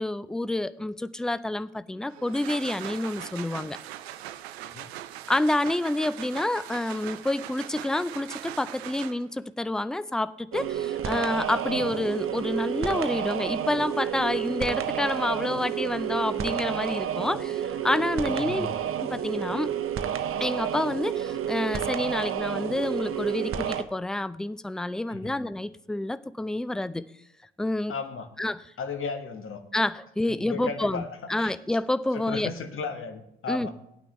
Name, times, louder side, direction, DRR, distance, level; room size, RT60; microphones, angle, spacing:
voice 1, 0.0-3.8 5.3-18.7 19.0-19.8 20.4-27.0 27.6-27.9 28.4-28.6 29.7-32.5 33.5-33.7, left 1 dB, ahead, 0.3 m, -28 dB
sound 1, 2.1-9.4, right 13 dB, 75° right, 0.5 m, -41 dB
voice 2, 4.6-4.9 11.7-11.9 18.2-18.7 25.1-25.4 27.9-28.3 28.8-29.6 30.3-31.1 31.4-31.6 32.1-33.7, left 4 dB, 40° left, 1.4 m, -35 dB
sound 2, 10.5-23.8, right 9 dB, 40° right, 0.8 m, -30 dB
17.0 x 9.0 x 3.3 m
figure-of-eight pair, 45°, 32 cm